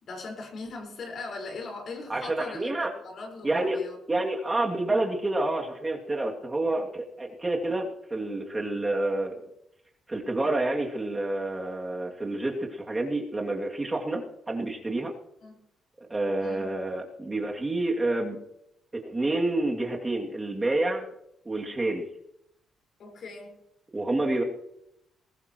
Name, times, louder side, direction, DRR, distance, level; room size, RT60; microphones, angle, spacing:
voice 1, 0.0-2.7 3.0-4.0 15.4-15.6 16.4-16.7 23.0-23.5, left 3 dB, 60° left, 1 dB, 4.8 m, -39 dB
voice 2, 2.1-2.9 3.4-3.8 4.1-9.4 10.1-15.1 16.1-18.4 18.9-21.1 21.5-22.0 23.9-24.4, right 2 dB, 20° right, 0 dB, 2.5 m, -28 dB
21.0 x 16.0 x 3.1 m, 0.79 s
cardioid pair, 90°, 0 cm